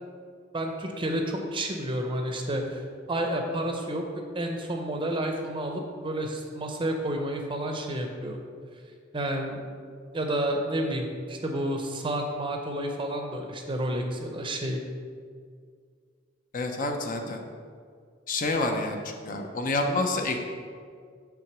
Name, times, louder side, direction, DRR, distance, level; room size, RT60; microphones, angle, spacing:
voice 1, 0.5-2.8 3.1-8.4 9.1-9.7 10.1-14.8, right 1 dB, 25° right, 3 dB, 0.6 m, -30 dB
voice 2, 16.5-17.4 18.3-20.4, left 2 dB, 45° left, 4 dB, 0.6 m, -28 dB
6.0 x 3.7 x 5.9 m, 2.1 s
head